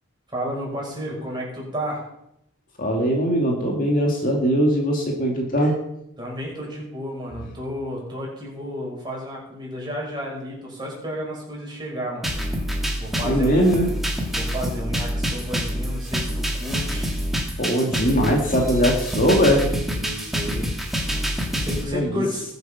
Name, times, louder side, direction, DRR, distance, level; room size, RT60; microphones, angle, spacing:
voice 1, 0.3-2.0 6.2-12.3 13.0-13.6 14.3-17.2 19.9-20.7 21.6-22.4, equal, 20° right, -3 dB, 5.8 m, -32 dB
voice 2, 2.8-5.7 13.2-13.9 17.6-19.7 21.9-22.2, equal, 40° left, 0 dB, 2.4 m, -20 dB
sound 1, 12.2-21.8, equal, ahead, 2.2 m, -26 dB
20.5 x 8.2 x 5.8 m, 0.80 s
head